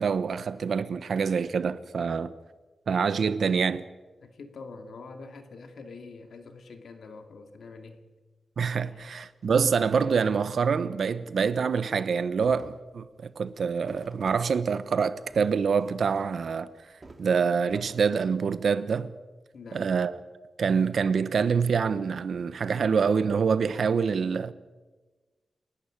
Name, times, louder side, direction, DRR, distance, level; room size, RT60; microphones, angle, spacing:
voice 1, 0.0-2.3 2.9-3.9 8.6-16.7 17.2-19.1 19.7-20.2 20.6-24.5, right 6 dB, 65° right, 1.0 m, -26 dB
voice 2, 4.2-8.0 8.8-9.1 19.5-19.8, left 4 dB, 75° left, 2.5 m, -45 dB
sound 1, 12.4-12.8 13.1-14.5 15.2-16.7 17.0-17.9, right 2 dB, 25° right, 2.5 m, -50 dB
29.5 x 12.0 x 8.8 m
wide cardioid pair, 180°, 0 cm